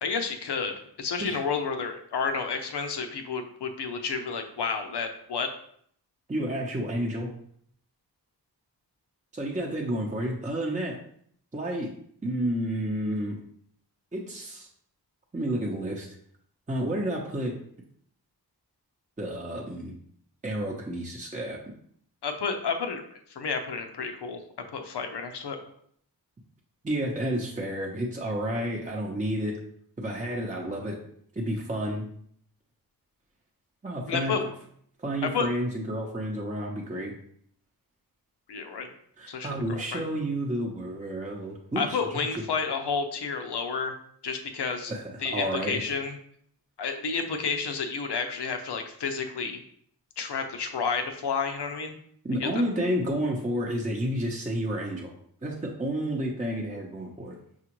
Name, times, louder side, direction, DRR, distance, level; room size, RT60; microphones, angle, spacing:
voice 1, 0.0-0.7 1.0-5.5 22.2-23.0 23.4-24.4 24.7-25.6 34.1-34.5 35.2-35.5 38.5-38.9 39.3-40.0 41.8-43.9 44.2-44.9 45.2-46.2 46.8-49.6 50.2-51.9 52.4-52.5, left 5 dB, 90° left, 6 dB, 0.6 m, -30 dB
voice 2, 6.3-7.3 9.3-11.0 11.5-11.9 12.2-13.4 14.1-14.7 15.3-16.1 16.7-17.6 19.2-19.9 20.4-21.6 26.8-29.6 30.0-31.0 31.4-32.1 33.8-34.4 35.0-37.2 39.2-42.0 42.3-42.4 44.9-45.8 52.2-55.1 55.4-57.4, right 1 dB, 20° right, -1 dB, 0.6 m, -30 dB
5.9 x 2.4 x 3.0 m, 0.65 s
wide cardioid pair, 60°, 39 cm